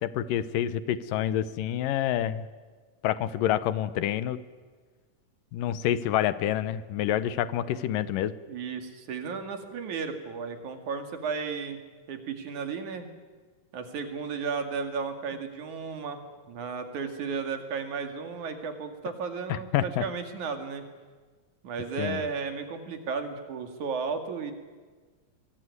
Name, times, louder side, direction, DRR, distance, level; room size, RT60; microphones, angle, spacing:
voice 1, 0.0-2.5 3.0-4.4 5.5-8.3 19.5-20.0 22.0-22.2, left 11 dB, 80° left, 15 dB, 2.6 m, -28 dB
voice 2, 8.5-11.8 12.1-13.1 13.7-16.2 16.5-20.9 21.6-24.5, right 5 dB, 65° right, 7 dB, 3.6 m, -34 dB
24.5 x 22.5 x 9.6 m, 1.4 s
omnidirectional pair, 3.9 m